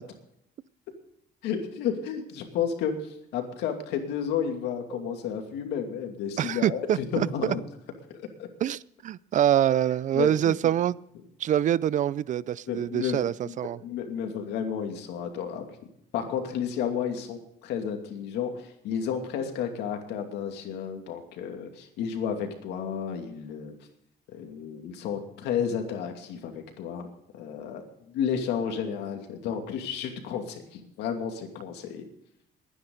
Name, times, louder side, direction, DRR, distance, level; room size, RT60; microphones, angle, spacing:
voice 1, 1.4-7.6 8.1-8.5 10.1-10.6 12.7-13.5 13.8-15.6 16.1-23.7 24.3-27.1 27.3-27.8 28.1-32.0, left 7 dB, 85° left, 4 dB, 2.6 m, -32 dB
voice 2, 6.4-7.5 8.6-11.0 11.4-13.8, right 11 dB, 45° right, 21 dB, 0.4 m, -25 dB
22.0 x 10.0 x 3.9 m, 0.77 s
cardioid pair, 110°, 17 cm